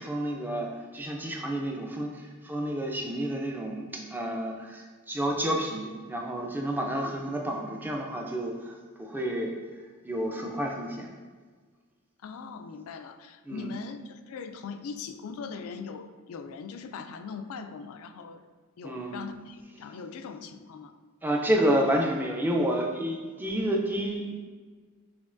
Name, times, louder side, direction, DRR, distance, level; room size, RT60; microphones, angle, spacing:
voice 1, 0.0-9.5 10.0-11.1 13.5-13.7 18.8-19.2 21.2-24.4, right 1 dB, 10° right, 0 dB, 0.4 m, -30 dB
voice 2, 12.2-18.4 18.8-20.9, left 5 dB, 70° left, 9 dB, 0.3 m, -40 dB
6.2 x 3.0 x 2.5 m, 1.5 s
head